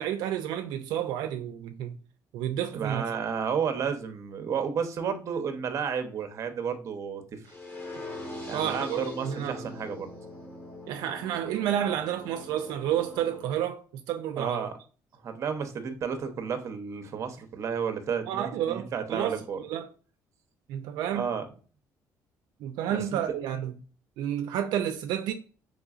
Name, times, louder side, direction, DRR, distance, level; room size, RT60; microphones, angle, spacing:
voice 1, 0.0-2.0 2.3-3.1 8.5-9.6 10.9-14.7 18.3-19.9 20.7-21.2 22.6-23.7 24.2-25.3, right 10 dB, 85° right, 0.4 m, -30 dB
voice 2, 2.7-7.4 8.5-10.1 14.4-14.7 15.2-19.6 21.1-21.4 22.9-23.0, right 7 dB, 45° right, 0.6 m, -32 dB
sound 1, 7.5-13.4, left 1 dB, 30° left, 1.1 m, -42 dB
3.8 x 3.3 x 2.4 m
cardioid pair, 125°, 7 cm